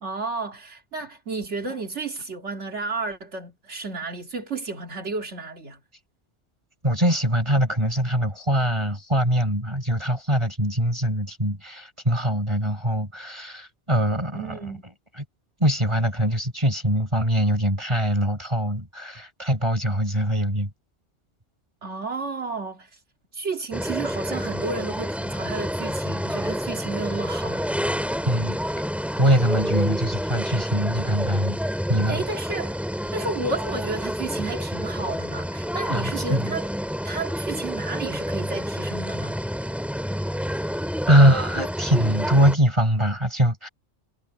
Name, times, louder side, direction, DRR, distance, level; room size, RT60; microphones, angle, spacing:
voice 1, 0.0-5.8 14.3-14.8 21.8-23.0 23.3-27.7 29.7-29.9 32.1-32.7 33.1-36.7 37.0-39.4, right 3 dB, 75° right, 2.3 m, -32 dB
voice 2, 6.8-14.7 15.2-15.3 15.6-20.7 28.3-28.6 29.2-31.6 31.9-32.2 35.9-36.5 41.1-43.7, equal, 25° right, 5.7 m, -22 dB
sound 1, 23.7-42.6, equal, ahead, 4.1 m, -29 dB
omnidirectional pair, 1.2 m